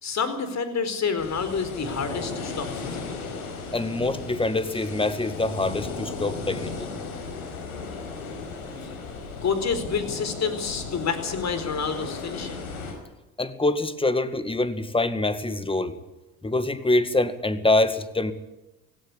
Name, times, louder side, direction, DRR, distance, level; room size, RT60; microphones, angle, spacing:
voice 1, 0.0-3.3 8.8-9.0 9.4-12.6, left 5 dB, 40° left, 10 dB, 4.6 m, -28 dB
sound 1, 1.2-12.9, left 4 dB, 85° left, 5.0 m, -36 dB
voice 2, 3.7-7.0 13.4-16.0 16.4-18.3, left 2 dB, 10° left, 12 dB, 2.0 m, -25 dB
17.5 x 17.5 x 9.8 m, 0.99 s
hypercardioid pair, 70°, 42 cm